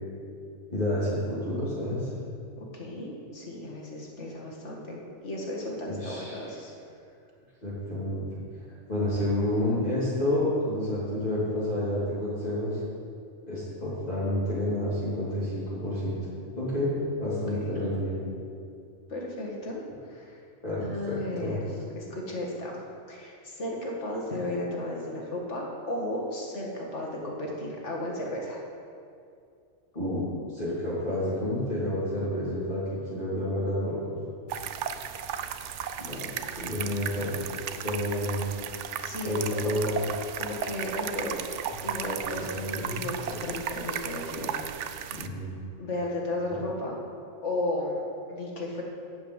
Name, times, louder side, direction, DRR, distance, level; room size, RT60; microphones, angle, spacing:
voice 1, 0.7-2.1 5.8-6.4 7.6-8.4 8.9-12.8 13.5-16.2 16.5-16.9 17.2-18.2 20.6-21.6 29.9-30.2 30.5-32.8 33.1-34.2 36.0-36.3 36.5-37.4 37.8-38.5 39.2-39.9 42.3-43.0 45.1-45.6, left 1 dB, 35° left, -10 dB, 3.0 m, -29 dB
voice 2, 2.6-6.7 17.3-17.7 19.1-20.4 20.8-21.6 22.0-22.8 23.1-28.6 39.0-40.0 40.4-41.4 41.8-44.9 45.8-47.0 47.4-48.8, left 1 dB, 80° left, -2 dB, 2.1 m, -34 dB
sound 1, 34.5-45.3, right 8 dB, 85° right, 0.9 m, -35 dB
12.0 x 5.3 x 8.0 m, 2.4 s
omnidirectional pair, 1.2 m